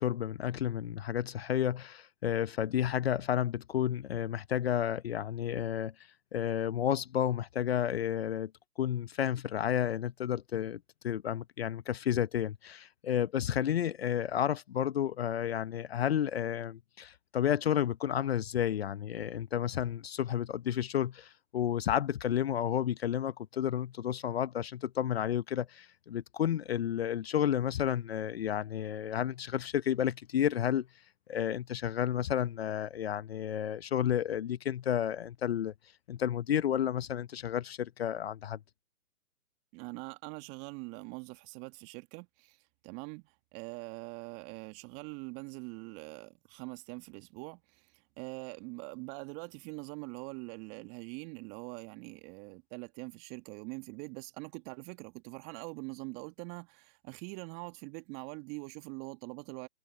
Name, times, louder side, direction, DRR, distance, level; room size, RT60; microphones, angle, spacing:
voice 1, 0.0-5.9 6.3-8.5 8.8-30.9 31.3-35.7 36.1-38.6, left 10 dB, 45° left, 1.1 m, -31 dB
voice 2, 39.7-42.6 42.8-59.7, right 31 dB, 25° right, 2.3 m, -43 dB
figure-of-eight pair, 135°, 43 cm